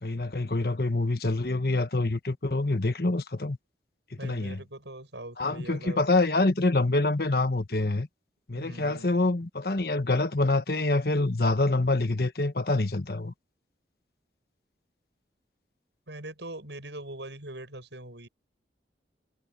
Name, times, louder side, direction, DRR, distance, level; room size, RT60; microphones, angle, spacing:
voice 1, 0.0-3.6 4.2-4.6 5.4-8.1 8.5-13.3, left 2 dB, 55° left, 1.3 m, -26 dB
voice 2, 4.2-6.0 8.5-9.2 16.1-18.3, right 1 dB, 80° right, 7.8 m, -42 dB
head